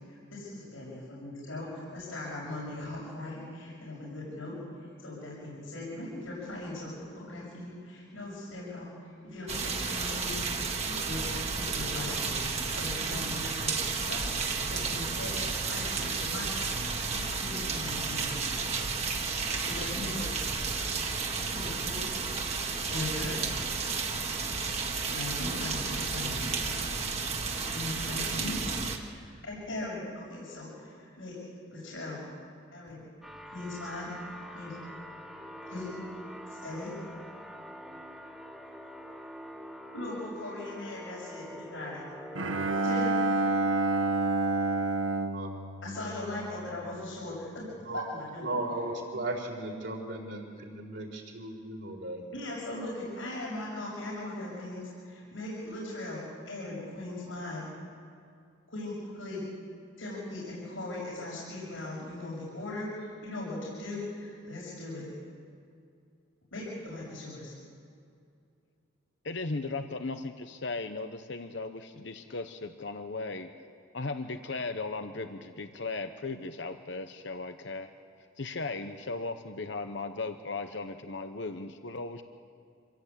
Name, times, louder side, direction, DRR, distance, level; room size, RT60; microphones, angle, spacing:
voice 1, 0.1-16.7 17.1-18.5 19.7-20.2 21.3-22.0 22.9-23.4 25.1-26.6 27.7-28.6 29.2-31.3 31.7-32.3 32.7-33.0 33.5-34.1 34.5-34.7 35.7-36.0 36.4-36.9 39.9-42.0 42.8-43.1 45.8-47.7 48.0-48.6 52.3-56.2 56.5-57.6 58.7-59.5 60.0-65.0 66.5-67.5, left 2 dB, 85° left, -5 dB, 6.4 m, -39 dB
sound 1, 9.5-29.0, right 4 dB, 35° right, 1.8 m, -32 dB
sound 2, 33.2-43.0, equal, 5° right, 2.1 m, -45 dB
Bowed string instrument, 42.3-46.7, right 2 dB, 85° right, 1.4 m, -29 dB
voice 2, 48.4-52.2, right 2 dB, 60° right, 1 dB, 4.4 m, -36 dB
voice 3, 69.2-73.5 73.9-77.9 78.2-82.2, left 3 dB, 60° left, 8 dB, 1.0 m, -37 dB
26.0 x 16.5 x 8.3 m, 2.4 s
head